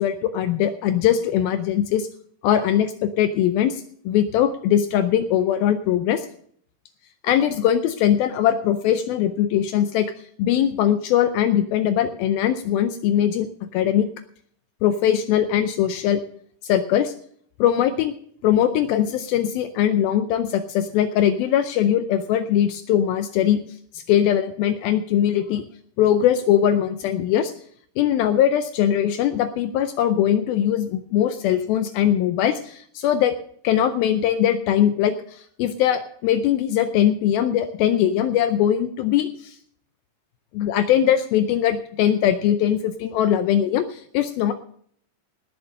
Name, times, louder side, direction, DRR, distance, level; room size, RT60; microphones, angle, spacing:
voice 1, 0.0-2.1 2.4-6.3 7.2-10.1 10.4-14.1 14.8-16.2 16.6-17.1 17.6-18.1 18.4-23.6 23.9-25.6 26.0-27.5 28.0-33.4 33.6-39.6 40.5-44.5, left 10 dB, 80° left, 10 dB, 2.3 m, -21 dB
18.0 x 7.1 x 6.5 m, 0.62 s
omnidirectional pair, 4.7 m